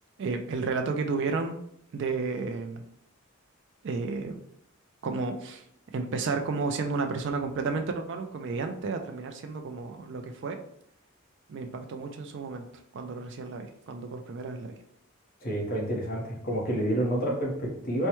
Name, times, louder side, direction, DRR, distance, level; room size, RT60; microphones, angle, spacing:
voice 1, 0.2-1.6 1.9-2.8 3.8-4.3 5.0-5.6 5.9-10.6 11.5-12.6 12.9-14.8, right 4 dB, 55° right, 5 dB, 0.3 m, -32 dB
voice 2, 15.4-18.1, right 1 dB, 40° left, -2 dB, 0.9 m, -29 dB
4.4 x 2.1 x 2.9 m, 0.71 s
head